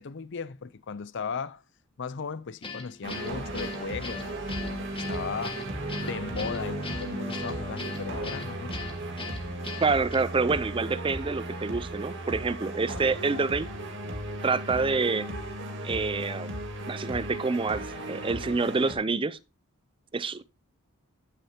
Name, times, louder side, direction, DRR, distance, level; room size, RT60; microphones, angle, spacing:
voice 1, 0.0-1.6 2.0-5.6 6.0-8.9, left 5 dB, 55° left, 0.5 m, -37 dB
Guitar, 2.6-10.2, left 4 dB, 25° left, 1.6 m, -40 dB
sound 1, 3.0-18.9, right 1 dB, 55° right, 1.9 m, -35 dB
voice 2, 9.8-13.7 14.4-15.3 15.8-16.5 16.9-19.4 20.1-20.4, right 4 dB, 25° right, 0.5 m, -27 dB
15.5 x 6.7 x 2.8 m
head